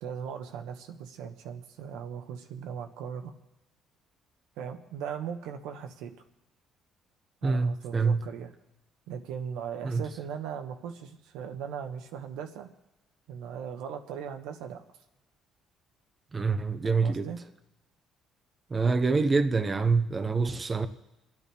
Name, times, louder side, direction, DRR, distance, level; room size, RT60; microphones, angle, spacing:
voice 1, 0.0-3.3 4.6-6.1 7.4-8.5 9.1-12.7 13.3-14.8 16.8-17.4, right 7 dB, 90° right, 1.3 m, -38 dB
voice 2, 7.4-8.2 9.8-10.0 16.3-17.3 18.7-20.9, right 4 dB, 25° right, 0.9 m, -26 dB
29.0 x 9.9 x 3.5 m
cardioid pair, 105°, 0 cm